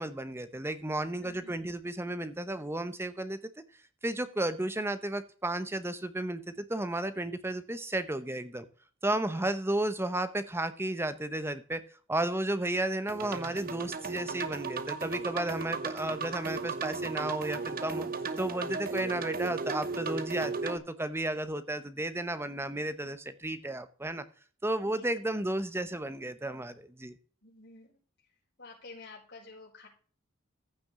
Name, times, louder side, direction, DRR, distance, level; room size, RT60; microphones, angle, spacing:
voice 1, 0.0-3.4 4.0-8.7 9.0-11.8 12.1-18.1 18.4-24.2 24.6-27.2, right 1 dB, 10° right, 12 dB, 0.8 m, -33 dB
voice 2, 1.2-1.7 9.1-9.5 24.8-25.1 27.4-28.0 28.6-29.9, left 3 dB, 55° left, -5 dB, 5.2 m, -51 dB
sound 1, 13.1-20.8, right 4 dB, 45° right, 0.8 m, -35 dB
15.0 x 6.0 x 3.7 m, 0.41 s
head